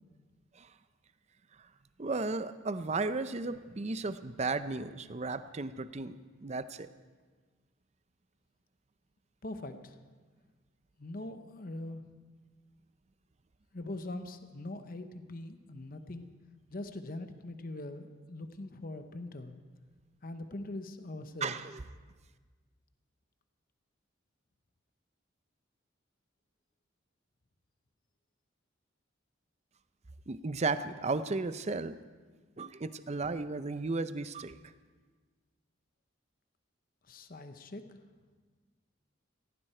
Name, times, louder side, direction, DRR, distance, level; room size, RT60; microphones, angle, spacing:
voice 1, 2.0-6.9 21.4-21.8 30.3-31.9 32.6-34.5, right 3 dB, 35° right, 12 dB, 0.5 m, -34 dB
voice 2, 9.4-10.0 11.0-12.0 13.7-16.3 16.7-19.5 20.2-21.5 37.1-37.8, left 2 dB, 45° left, 8 dB, 0.9 m, -42 dB
18.0 x 14.5 x 4.4 m, 1.4 s
head